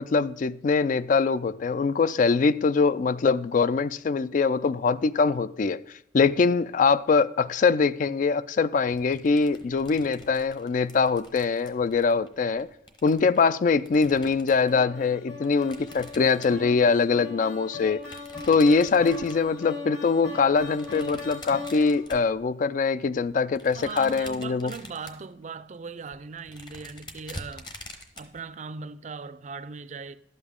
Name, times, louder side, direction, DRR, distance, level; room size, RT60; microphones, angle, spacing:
voice 1, 0.0-5.8 6.1-12.7 13.0-18.0 18.5-24.7, left 4 dB, 45° left, 0.3 m, -23 dB
sound 1, 8.9-14.8 15.4-17.0 17.9-19.6 20.4-22.8 23.2-25.3 25.7-25.8 26.1-28.4, left 1 dB, 25° left, 1.0 m, -46 dB
sound 2, 14.7-22.1, left 3 dB, 65° left, 4.2 m, -39 dB
voice 2, 23.7-27.7 28.2-30.2, right 5 dB, 40° right, 0.4 m, -39 dB
12.0 x 8.1 x 3.7 m
head